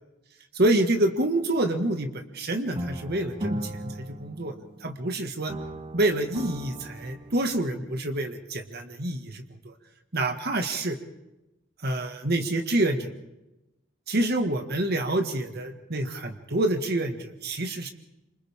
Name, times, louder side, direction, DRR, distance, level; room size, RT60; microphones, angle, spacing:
voice 1, 0.5-4.5 4.8-5.5 5.9-9.7 10.1-11.0 11.8-13.1 14.1-17.9, right 1 dB, 55° right, 5 dB, 1.9 m, -27 dB
sound 1, 2.7-5.1 5.5-7.7, right 1 dB, 30° right, 0.9 m, -37 dB
28.5 x 26.0 x 3.7 m, 0.96 s
head